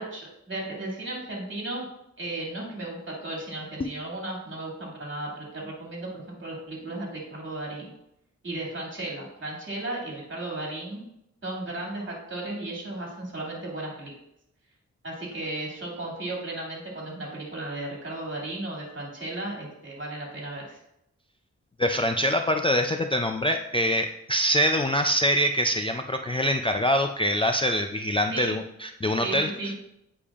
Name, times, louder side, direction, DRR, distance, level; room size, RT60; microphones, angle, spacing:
voice 1, 0.0-1.9 2.2-7.9 8.4-11.0 11.4-14.1 15.0-20.8 28.3-28.5 29.2-29.8, right 2 dB, 40° right, -2 dB, 2.4 m, -35 dB
voice 2, 21.8-29.5, equal, 20° left, 5 dB, 0.3 m, -24 dB
8.5 x 5.1 x 2.4 m, 0.79 s
wide cardioid pair, 90°, 29 cm